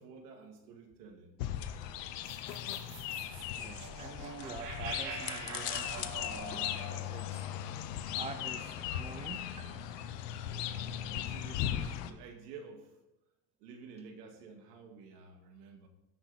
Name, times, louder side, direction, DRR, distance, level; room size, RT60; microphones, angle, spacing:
voice 1, 0.0-1.4 10.5-10.6 11.1-13.0 13.6-15.9, right 5 dB, 90° right, 3 dB, 2.3 m, -51 dB
sound 1, 1.4-12.1, left 11 dB, 85° left, 1.1 m, -38 dB
sound 2, 2.2-8.6, right 3 dB, 70° right, 2.8 m, -45 dB
voice 2, 3.6-10.0 10.5-10.7, right 4 dB, 15° right, 8 dB, 0.8 m, -47 dB
15.5 x 6.2 x 4.2 m, 0.96 s
supercardioid pair, 125°, 47 cm